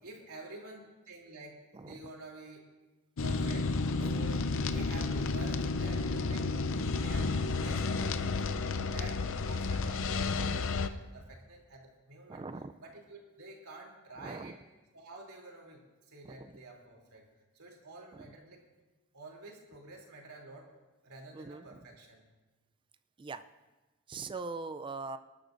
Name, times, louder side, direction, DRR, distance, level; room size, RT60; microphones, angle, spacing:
voice 1, 0.0-2.7 3.2-3.7 4.0-12.4 12.8-14.6 14.9-15.8 16.1-17.2 17.5-18.7 19.1-20.7 21.0-22.3, right 2 dB, 80° right, -1 dB, 3.1 m, -49 dB
sound 1, 3.2-10.9, left 3 dB, 60° left, 0.6 m, -31 dB
voice 2, 12.3-12.7 14.2-14.6 16.2-16.4 21.3-21.6 23.2-23.4 24.1-25.2, right 3 dB, 25° right, 11 dB, 0.4 m, -41 dB
25.0 x 12.0 x 2.6 m, 1.2 s
head